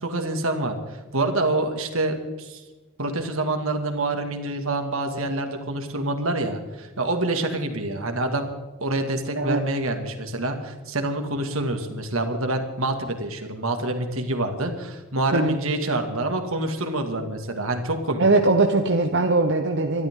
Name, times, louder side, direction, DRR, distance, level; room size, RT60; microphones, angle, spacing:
voice 1, 0.0-2.6 3.0-8.5 8.8-18.2, right 2 dB, 75° right, 5 dB, 2.2 m, -27 dB
voice 2, 18.2-20.1, right 2 dB, 55° right, 3 dB, 1.0 m, -20 dB
24.5 x 12.5 x 3.8 m, 1.2 s
head